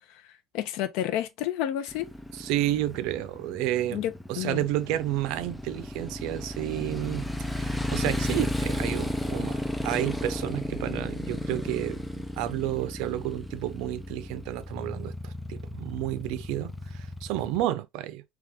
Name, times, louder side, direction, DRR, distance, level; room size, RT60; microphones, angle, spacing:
voice 1, 0.5-2.1 3.9-4.6, left 12 dB, 75° left, 0.7 m, -30 dB
Motorcycle, 1.9-17.6, left 1 dB, 5° left, 0.4 m, -34 dB
voice 2, 2.3-4.0 4.3-18.2, right 14 dB, 80° right, 0.5 m, -31 dB
3.6 x 3.0 x 3.5 m
cardioid pair, 170°, 0 cm